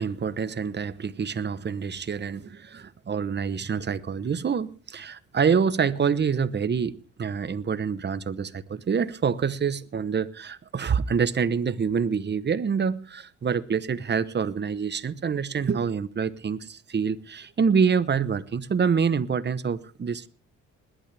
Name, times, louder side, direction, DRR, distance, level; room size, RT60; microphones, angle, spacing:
voice 1, 0.0-20.3, right 6 dB, 35° right, 1.0 m, -26 dB
21.0 x 11.5 x 3.4 m
cardioid pair, 90°, 30 cm